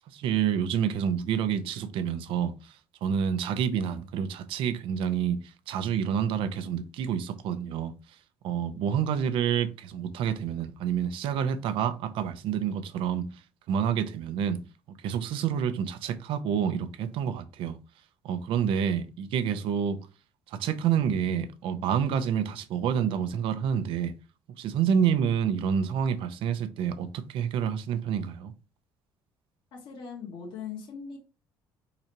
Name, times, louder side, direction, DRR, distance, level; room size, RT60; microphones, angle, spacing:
voice 1, 0.1-7.9 8.4-13.3 13.7-14.6 14.9-17.8 18.2-20.0 20.5-24.1 24.6-28.5, right 8 dB, 75° right, 0.7 m, -28 dB
voice 2, 29.7-31.2, left 6 dB, 70° left, 1.7 m, -40 dB
4.4 x 3.9 x 2.9 m
cardioid pair, 90°, 9 cm